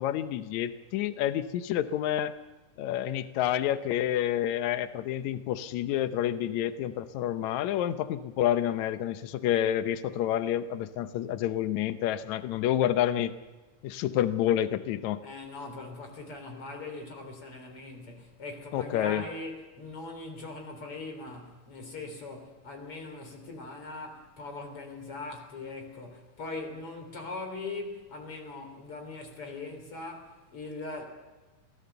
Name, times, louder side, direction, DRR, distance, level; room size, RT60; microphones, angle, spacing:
voice 1, 0.0-2.3 2.8-13.3 13.8-15.2 18.7-19.2, left 11 dB, 70° left, 2.2 m, -29 dB
voice 2, 15.2-31.0, left 3 dB, 45° left, 4.3 m, -41 dB
25.0 x 17.5 x 6.9 m
omnidirectional pair, 3.6 m